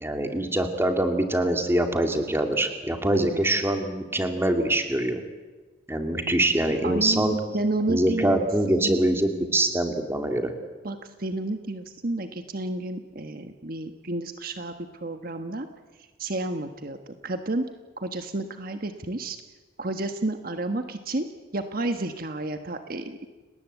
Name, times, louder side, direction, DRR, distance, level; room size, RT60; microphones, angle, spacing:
voice 1, 0.0-5.2 5.9-7.3 7.9-10.5, right 1 dB, 15° right, 5 dB, 2.5 m, -24 dB
voice 2, 3.1-3.5 6.8-8.4 8.7-9.6 10.8-14.7 15.0-15.7 16.0-17.6 18.0-19.4 19.8-21.3 21.5-23.3, right 2 dB, 50° right, 7 dB, 1.3 m, -31 dB
30.0 x 19.0 x 8.2 m, 1.3 s
head